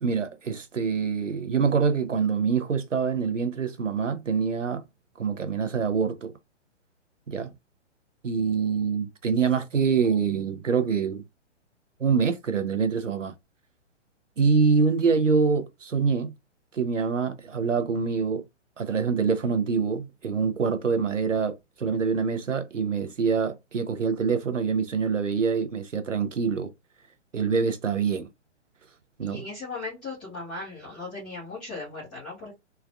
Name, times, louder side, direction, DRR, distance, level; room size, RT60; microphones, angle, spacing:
voice 1, 0.0-4.8 5.2-6.3 7.3-7.5 8.2-11.2 12.0-13.3 14.4-16.3 16.7-18.4 18.8-26.7 27.3-28.3 29.2-29.4, right 5 dB, 85° right, 0.8 m, -25 dB
voice 2, 29.2-32.5, left 3 dB, ahead, 0.3 m, -37 dB
3.4 x 2.3 x 2.3 m
figure-of-eight pair, 125°, 36 cm